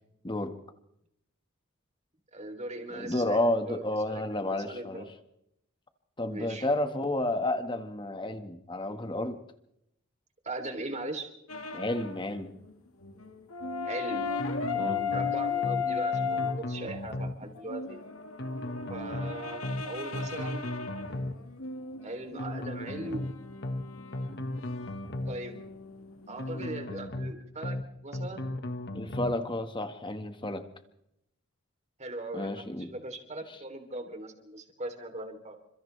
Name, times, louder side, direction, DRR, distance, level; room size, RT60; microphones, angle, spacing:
voice 1, 0.2-0.6 2.9-5.1 6.2-9.4 11.7-12.6 14.7-15.1 28.9-30.7 32.3-32.9, left 1 dB, 25° left, 8 dB, 1.8 m, -31 dB
voice 2, 2.3-4.2 4.5-5.1 6.2-6.7 10.4-11.3 13.8-14.3 15.1-18.0 18.9-20.6 22.0-23.3 25.3-25.6 26.3-28.5 32.0-35.6, right 2 dB, 35° right, 5 dB, 3.5 m, -39 dB
sound 1, 11.5-12.3 12.6-12.7 13.0-16.6 17.4-26.7, left 5 dB, 90° left, 2.0 m, -36 dB
sound 2, 14.4-15.3 15.6-15.8 16.1-17.4 18.4-19.3 19.6-19.8 20.1-21.4 22.4-23.3 23.6-23.8 24.1-25.4 26.4-27.3 27.6-27.8 28.1-29.4, left 1 dB, 55° left, 1.7 m, -36 dB
29.5 x 26.0 x 3.4 m, 0.79 s
head